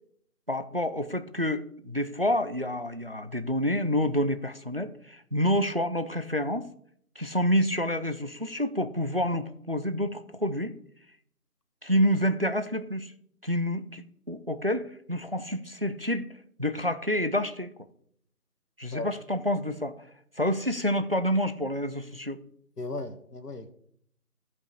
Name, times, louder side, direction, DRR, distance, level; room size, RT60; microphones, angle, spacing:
voice 1, 0.5-6.7 7.2-10.7 11.8-13.1 13.4-16.3 16.6-17.7 18.8-19.9 20.4-22.4, equal, 40° right, 11 dB, 0.5 m, -28 dB
voice 2, 22.8-23.7, left 2 dB, 85° left, 9 dB, 1.5 m, -36 dB
14.0 x 5.4 x 4.9 m, 0.67 s
figure-of-eight pair, 165°, 46 cm